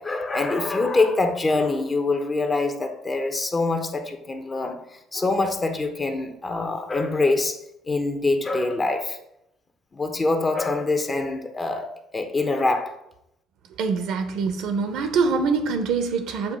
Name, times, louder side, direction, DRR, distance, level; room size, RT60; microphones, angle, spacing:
voice 1, 0.0-7.6 7.9-9.2 9.9-12.9, left 3 dB, 25° left, 0.9 m, -24 dB
voice 2, 13.8-16.6, right 4 dB, 75° right, 0.8 m, -24 dB
7.0 x 2.7 x 5.3 m
supercardioid pair, 80°, 0 cm